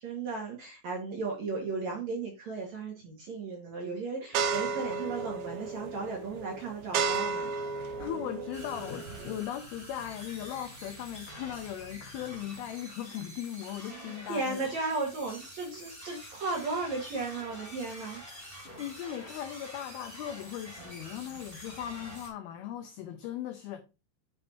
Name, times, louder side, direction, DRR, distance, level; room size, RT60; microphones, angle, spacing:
voice 1, 0.0-7.5 13.9-18.2, right 3 dB, 55° right, 2.1 m, -35 dB
sound 1, 4.3-9.4, right 5 dB, 75° right, 2.4 m, -33 dB
voice 2, 8.0-14.7 18.2-18.3 18.8-23.8, left 11 dB, 85° left, 2.1 m, -38 dB
sound 2, 8.5-22.3, equal, 10° right, 3.0 m, -47 dB
8.4 x 6.6 x 2.7 m
omnidirectional pair, 5.3 m